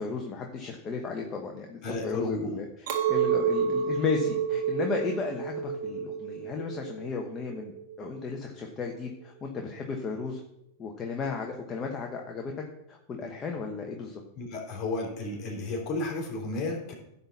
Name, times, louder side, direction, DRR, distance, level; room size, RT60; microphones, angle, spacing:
voice 1, 0.0-10.4 10.8-12.5 12.9-14.2, left 5 dB, 25° left, 1 dB, 1.2 m, -34 dB
voice 2, 1.8-2.5 13.2-13.3 14.4-16.9, left 2 dB, 45° left, 0 dB, 3.4 m, -33 dB
Chink clink, 2.9-8.2, right 7 dB, 65° right, 1.8 m, -30 dB
11.0 x 4.1 x 7.1 m, 0.81 s
hypercardioid pair, 125°, 0 cm